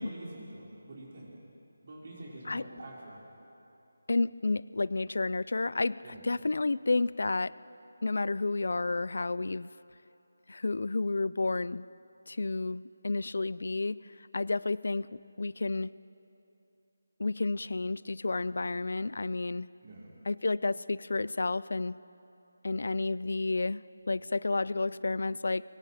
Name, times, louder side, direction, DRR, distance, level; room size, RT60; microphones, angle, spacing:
voice 1, 0.0-1.4 1.8-3.2 6.0-6.3 19.8-20.1, right 1 dB, 40° right, -4 dB, 5.1 m, -45 dB
voice 2, 4.1-7.5 8.0-9.7 10.5-11.8 12.3-14.0 14.3-15.1 15.4-15.9 17.2-19.7 20.3-22.0 22.6-25.6, left 3 dB, 65° left, 19 dB, 0.5 m, -31 dB
23.5 x 23.0 x 5.0 m, 2.9 s
figure-of-eight pair, 175°, 0 cm